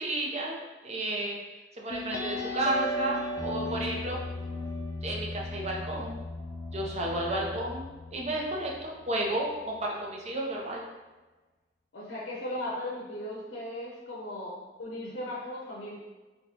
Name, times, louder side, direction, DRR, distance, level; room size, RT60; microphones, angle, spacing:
voice 1, 0.0-1.4 1.7-4.2 5.0-6.2 6.7-10.9, right 1 dB, 40° right, -1 dB, 0.6 m, -32 dB
sound 1, 1.9-9.1, left 2 dB, 20° left, 0.4 m, -36 dB
voice 2, 7.1-7.6 11.9-15.9, left 1 dB, 85° left, -6 dB, 0.7 m, -37 dB
3.6 x 2.8 x 2.9 m, 1.2 s
head